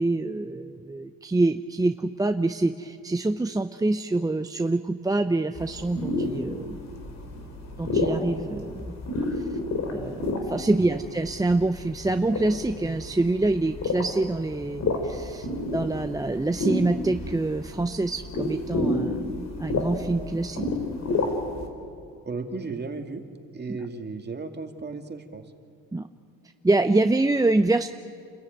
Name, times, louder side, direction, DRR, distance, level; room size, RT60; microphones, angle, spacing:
voice 1, 0.0-6.9 7.8-8.9 9.3-9.4 9.9-20.7 25.9-26.1 26.6-27.9, right 2 dB, 10° right, 7 dB, 0.7 m, -26 dB
sound 1, 5.6-21.7, left 2 dB, 45° left, 3.9 m, -30 dB
voice 2, 10.7-11.0 22.2-23.2 23.5-25.4, right 4 dB, 30° right, 4 dB, 2.4 m, -35 dB
sound 2, 10.8-13.2 13.5-13.6 13.9-14.1 14.7-15.2 15.6-16.1 17.1-17.5 18.2-18.3 18.6-19.2, right 3 dB, 55° right, 2.4 m, -46 dB
29.0 x 14.5 x 9.3 m, 2.4 s
supercardioid pair, 80°, 36 cm